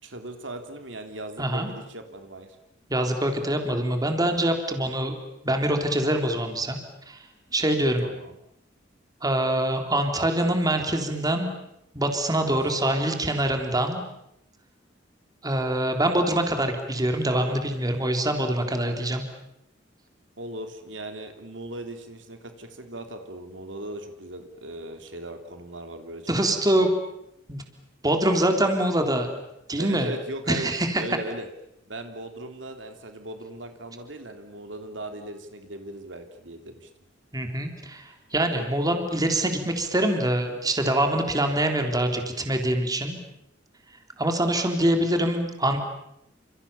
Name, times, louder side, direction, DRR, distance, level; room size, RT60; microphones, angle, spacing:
voice 1, 0.0-2.6 8.0-8.3 12.3-12.6 20.4-26.9 29.8-30.7 31.0-31.5 31.9-36.9 38.5-38.6, right 1 dB, 80° right, 6 dB, 3.3 m, -38 dB
voice 2, 2.9-5.1 5.4-6.8 7.1-7.2 7.5-8.0 9.2-11.5 11.9-14.0 15.4-19.2 26.3-26.9 27.5-27.6 28.0-29.3 29.7-30.1 30.5-31.0 37.3-43.2 44.2-45.8, right 1 dB, 20° right, 5 dB, 3.7 m, -24 dB
29.5 x 28.0 x 7.1 m, 0.81 s
head